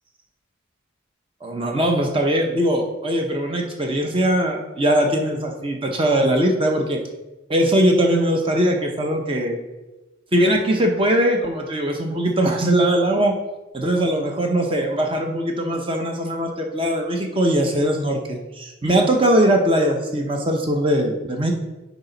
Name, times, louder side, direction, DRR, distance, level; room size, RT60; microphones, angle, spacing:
voice 1, 1.4-7.0 7.5-9.6 10.3-13.3 13.7-21.5, right 1 dB, 25° right, 2 dB, 0.7 m, -20 dB
9.9 x 4.0 x 3.9 m, 1.1 s
head